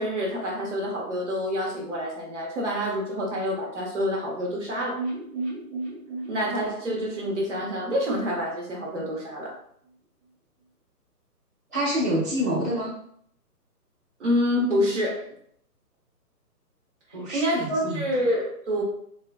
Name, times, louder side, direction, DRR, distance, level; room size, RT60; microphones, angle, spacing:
voice 1, 0.0-5.0 6.3-9.5 14.2-15.2 17.3-18.8, equal, 45° right, -3 dB, 1.0 m, -27 dB
sound 1, 4.9-8.8 9.1-9.2 9.5-9.6, right 2 dB, 10° left, 1.0 m, -35 dB
voice 2, 11.7-12.9 17.1-18.1, equal, 10° right, -17 dB, 0.8 m, -27 dB
3.7 x 2.4 x 2.4 m, 0.66 s
hypercardioid pair, 170°, 48 cm